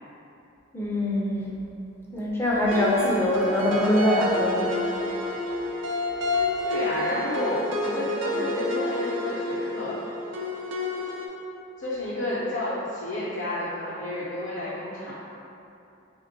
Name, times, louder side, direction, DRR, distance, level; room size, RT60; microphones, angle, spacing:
voice 1, 0.7-1.5 2.1-4.7, left 1 dB, 10° left, -5 dB, 0.4 m, -23 dB
sound 1, 2.7-11.3, left 2 dB, 70° right, 0.5 m, -29 dB
voice 2, 6.7-10.0 11.8-15.1, left 1 dB, 55° left, -9 dB, 0.6 m, -30 dB
3.3 x 2.2 x 3.9 m, 2.7 s
head